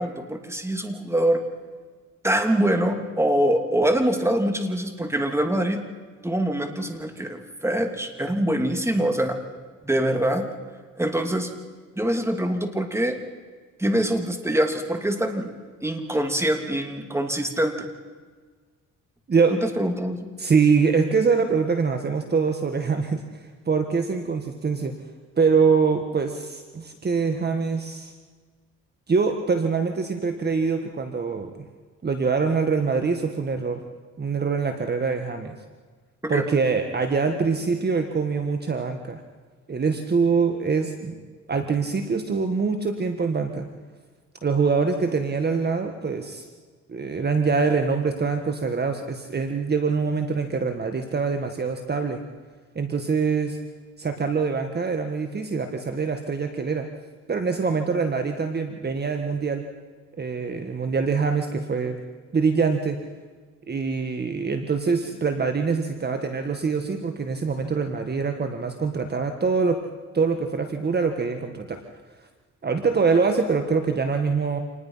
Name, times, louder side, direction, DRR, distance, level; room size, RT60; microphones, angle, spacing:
voice 1, 0.0-1.4 2.2-5.8 6.2-9.4 9.8-10.5 11.0-11.5 11.9-13.2 13.8-15.5 15.8-17.9 19.5-20.3 36.3-36.4, right 1 dB, 10° right, 5 dB, 2.9 m, -24 dB
voice 2, 20.4-23.2 23.7-24.9 25.4-28.1 29.1-31.5 32.0-33.8 34.2-35.6 36.3-39.2 39.7-41.2 41.5-43.7 44.4-46.5 46.9-52.2 52.8-53.6 54.0-56.9 57.3-59.7 60.2-62.0 62.3-63.0 63.7-69.8 70.1-71.8 72.6-74.6, right 5 dB, 35° right, 6 dB, 1.8 m, -24 dB
27.5 x 20.0 x 5.8 m, 1.5 s
cardioid pair, 90°, 30 cm